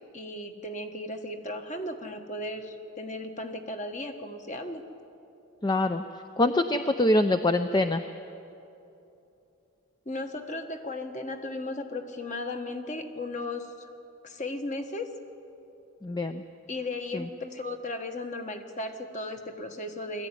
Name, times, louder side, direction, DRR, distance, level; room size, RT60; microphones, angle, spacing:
voice 1, 0.1-4.8 10.0-13.9 14.2-15.1 16.7-20.3, left 2 dB, 35° left, 5 dB, 1.4 m, -36 dB
voice 2, 5.6-6.0 6.4-8.0 16.0-16.4 17.1-17.2, left 1 dB, 20° left, 9 dB, 0.5 m, -24 dB
21.5 x 14.0 x 9.8 m, 2.8 s
head